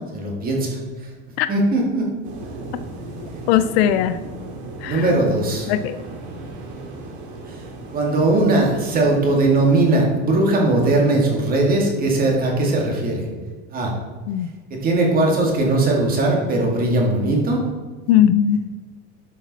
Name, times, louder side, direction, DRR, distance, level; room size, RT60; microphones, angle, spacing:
voice 1, 0.1-0.8 1.5-2.1 4.9-5.7 7.5-7.6 7.9-13.3 13.7-13.9 14.7-17.6, right 2 dB, 25° right, 0 dB, 2.1 m, -19 dB
sound 1, 2.2-9.9, right 2 dB, 70° right, 2.5 m, -36 dB
voice 2, 3.5-4.2 4.8-5.1 5.7-6.0 14.3-14.5 18.1-18.6, left 10 dB, 65° left, 12 dB, 0.5 m, -18 dB
11.5 x 5.8 x 4.1 m, 1.4 s
supercardioid pair, 155°, 34 cm